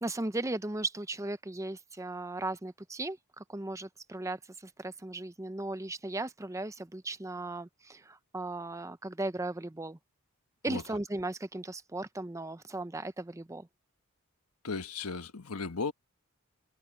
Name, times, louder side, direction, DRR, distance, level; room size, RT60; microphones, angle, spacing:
voice 1, 0.0-10.0 10.6-13.7, right 2 dB, 15° right, 0.6 m, -37 dB
voice 2, 14.6-15.9, left 4 dB, 80° left, 1.3 m, -35 dB
head